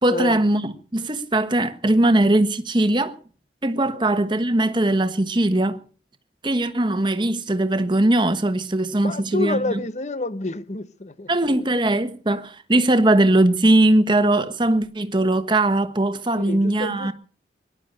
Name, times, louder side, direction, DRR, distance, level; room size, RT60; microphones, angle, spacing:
voice 1, 0.0-3.2 3.6-5.8 6.4-9.8 11.3-17.1, right 1 dB, 25° right, 1.2 m, -20 dB
voice 2, 9.0-11.3 16.4-17.1, left 2 dB, 40° left, 1.0 m, -28 dB
19.0 x 11.5 x 6.6 m
head